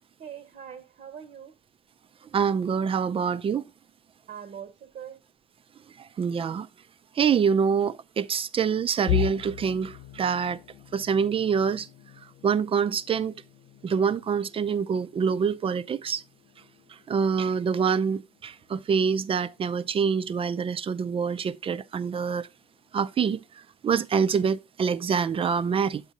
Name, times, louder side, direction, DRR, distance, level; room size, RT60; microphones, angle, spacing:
voice 1, 0.2-1.6 4.3-5.2, right 8 dB, 50° right, 0.9 m, -42 dB
voice 2, 2.3-3.7 6.2-6.7 7.2-10.6 10.9-11.9 12.4-13.3 13.8-16.2 17.1-22.5 22.9-23.4 23.8-26.0, right 6 dB, 35° right, 0.5 m, -25 dB
sound 1, 9.1-20.9 21.3-21.6 22.0-22.1 23.0-23.5, left 18 dB, 60° left, 0.4 m, -38 dB
8.2 x 8.2 x 2.7 m
cardioid pair, 110°, 17 cm